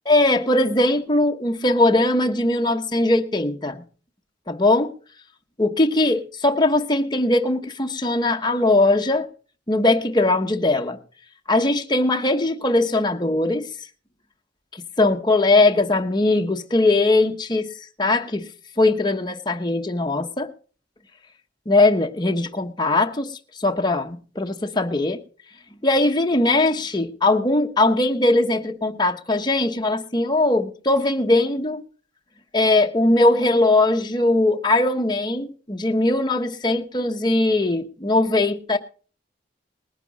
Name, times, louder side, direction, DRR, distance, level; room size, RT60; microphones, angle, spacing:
voice 1, 0.1-3.8 4.5-4.9 5.6-9.3 9.7-11.0 11.5-13.6 15.0-17.7 18.0-18.4 18.8-20.5 21.7-23.3 23.6-25.2 25.8-31.8 32.5-38.8, left 2 dB, 25° left, 1.0 m, -20 dB
20.0 x 9.9 x 4.0 m
head